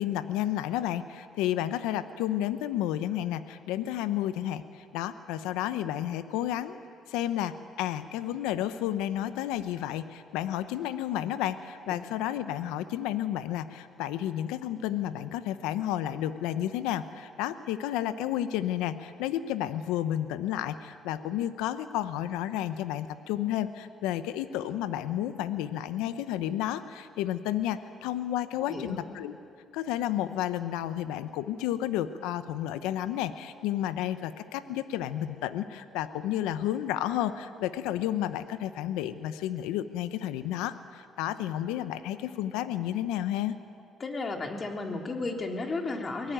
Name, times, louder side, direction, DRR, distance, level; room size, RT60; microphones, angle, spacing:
voice 1, 0.0-6.8 7.1-29.4 29.7-43.5, left 12 dB, 90° left, 12 dB, 0.9 m, -31 dB
voice 2, 44.0-46.3, left 3 dB, 40° left, 2 dB, 3.4 m, -33 dB
23.0 x 18.5 x 9.1 m, 2.3 s
supercardioid pair, 75°, 0 cm